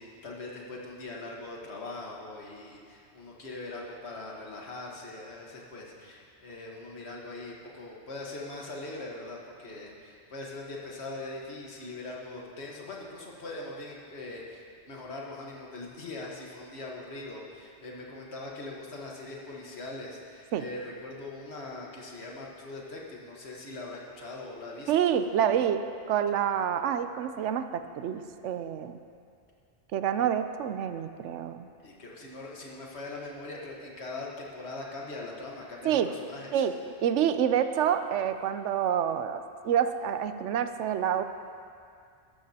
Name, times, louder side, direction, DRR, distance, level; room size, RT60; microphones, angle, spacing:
voice 1, 0.0-25.1 31.8-36.6, left 2 dB, 65° left, -2 dB, 1.7 m, -41 dB
voice 2, 24.9-29.0 29.9-31.7 35.8-36.1 36.5-36.8 37.0-41.2, right 9 dB, 85° right, 10 dB, 0.9 m, -27 dB
13.0 x 12.5 x 2.8 m, 2.3 s
omnidirectional pair, 1.2 m